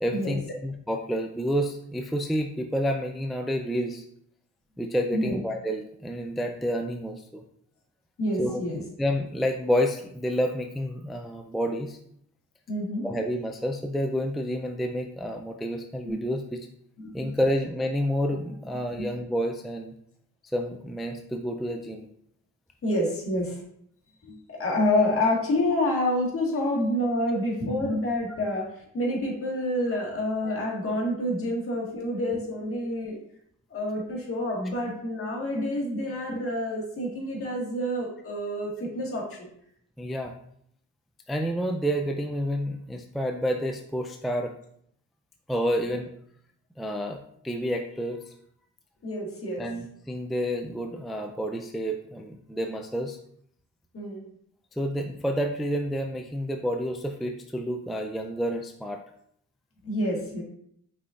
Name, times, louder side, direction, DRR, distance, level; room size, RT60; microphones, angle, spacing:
voice 1, 0.0-4.0 4.8-7.4 8.4-8.6 9.0-12.0 13.0-16.7 17.1-19.9 20.5-22.1 40.0-40.3 41.3-44.5 45.5-46.1 46.8-47.2 47.4-48.3 49.6-53.2 54.8-59.0, equal, ahead, 3 dB, 0.3 m, -29 dB
voice 2, 8.2-8.8 12.7-13.1 16.0-16.2 17.0-17.3 19.0-19.1 22.8-23.6 24.2-33.2 33.7-39.5 49.0-49.6 53.9-54.3 59.8-60.4, left 1 dB, 50° left, -1 dB, 1.7 m, -28 dB
5.4 x 3.8 x 2.4 m, 0.69 s
cardioid pair, 80°, 30 cm